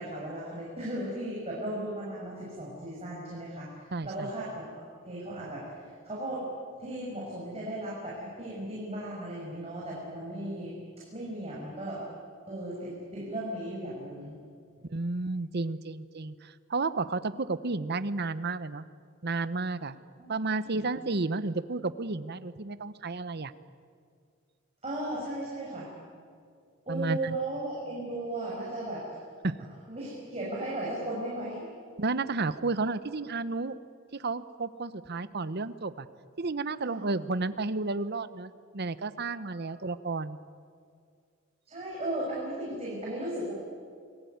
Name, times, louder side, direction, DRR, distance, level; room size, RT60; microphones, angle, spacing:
voice 1, 0.0-3.8 4.0-4.6 5.0-5.6 6.0-6.4 6.8-10.7 11.1-12.0 12.5-14.4 20.2-20.3 20.6-20.8 24.8-25.9 26.8-29.0 29.9-31.6 36.8-37.1 41.7-43.5, right 1 dB, 30° right, -5 dB, 6.6 m, -36 dB
voice 2, 3.9-4.3 14.9-18.8 19.2-19.9 20.3-23.5 26.9-27.4 29.4-29.6 32.0-33.8 34.1-36.1 36.4-40.4, right 3 dB, 55° right, 14 dB, 1.0 m, -32 dB
28.5 x 20.0 x 9.5 m, 2.2 s
head